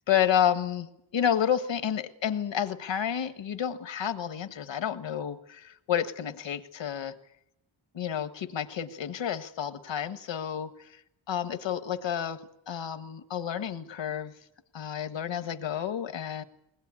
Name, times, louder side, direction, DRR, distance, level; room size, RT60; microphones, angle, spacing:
voice 1, 0.1-7.2 7.9-11.0 11.3-12.4 12.7-14.3 14.7-16.4, left 9 dB, 65° left, 10 dB, 1.5 m, -30 dB
21.5 x 19.5 x 9.8 m, 0.80 s
wide cardioid pair, 175°, 47 cm